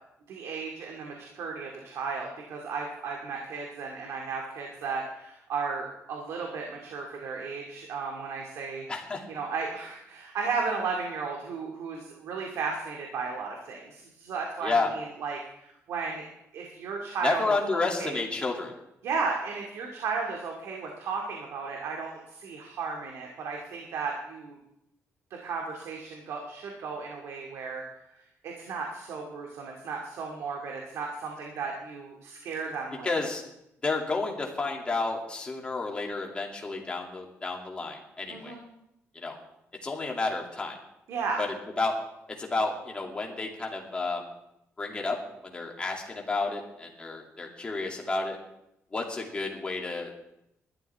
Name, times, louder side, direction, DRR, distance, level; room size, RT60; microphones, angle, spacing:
voice 1, 0.3-8.9 9.3-16.2 16.5-17.4 17.7-18.2 19.0-24.6 25.4-27.8 28.4-33.2 38.3-38.6 41.1-41.4, right 4 dB, 75° right, 0 dB, 2.2 m, -34 dB
voice 2, 8.9-9.2 14.6-14.9 17.2-18.7 33.0-33.4 33.8-38.5 39.1-39.4 39.8-40.8 41.4-41.5 41.8-42.0 42.3-44.3 44.8-45.2 45.4-48.4 48.9-50.2, left 3 dB, 20° left, 0 dB, 2.6 m, -31 dB
20.5 x 12.5 x 3.5 m, 0.82 s
cardioid pair, 145°, 5 cm